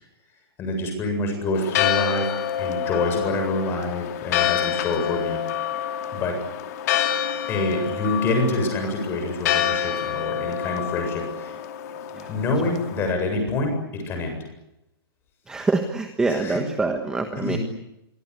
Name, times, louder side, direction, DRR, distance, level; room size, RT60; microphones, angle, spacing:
voice 1, 0.6-2.3 2.6-5.4 6.1-6.3 7.5-11.6 12.3-14.4 16.4-16.6 17.4-17.6, left 2 dB, 15° left, 5 dB, 7.8 m, -26 dB
Church bell, 1.6-13.1, left 10 dB, 40° left, 2.7 m, -27 dB
voice 2, 15.5-17.6, right 3 dB, 5° right, 6 dB, 1.4 m, -25 dB
27.5 x 24.0 x 8.4 m, 0.89 s
hypercardioid pair, 165°, 13 cm